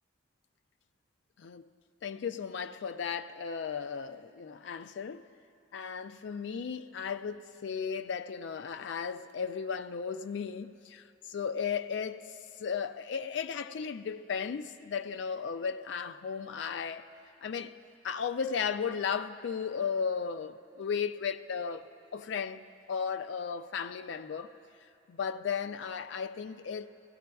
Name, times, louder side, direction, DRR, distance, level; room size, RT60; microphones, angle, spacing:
voice 1, 2.0-5.2 5.7-12.3 12.6-17.0 17.4-17.8 18.0-21.8 22.1-24.5 25.1-26.9, left 6 dB, 65° left, 0.3 m, -35 dB
16.5 x 16.0 x 2.3 m
head